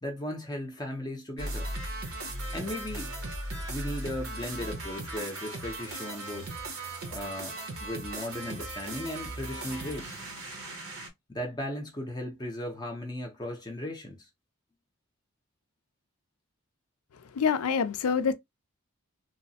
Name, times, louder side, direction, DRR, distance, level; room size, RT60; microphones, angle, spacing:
voice 1, 0.0-1.7 2.5-3.1 3.7-6.6 7.1-10.2 11.3-14.3, left 1 dB, 20° left, 0.6 m, -37 dB
sound 1, 1.4-11.1, right 1 dB, 70° right, 0.9 m, -37 dB
voice 2, 17.3-18.3, left 6 dB, 80° left, 0.4 m, -26 dB
3.0 x 2.0 x 2.6 m
head